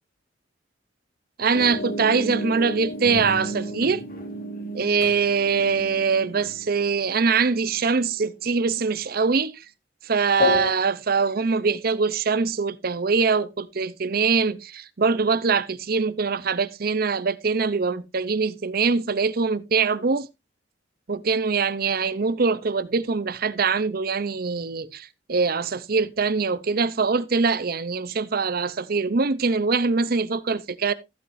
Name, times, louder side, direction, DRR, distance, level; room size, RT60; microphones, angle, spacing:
voice 1, 1.4-4.0 4.7-9.6 10.0-20.3 21.1-30.9, right 5 dB, 55° right, 0.7 m, -23 dB
sound 1, 1.5-8.3 9.0-9.1 10.4-10.7, left 2 dB, 50° left, 1.9 m, -32 dB
15.0 x 7.7 x 2.6 m
head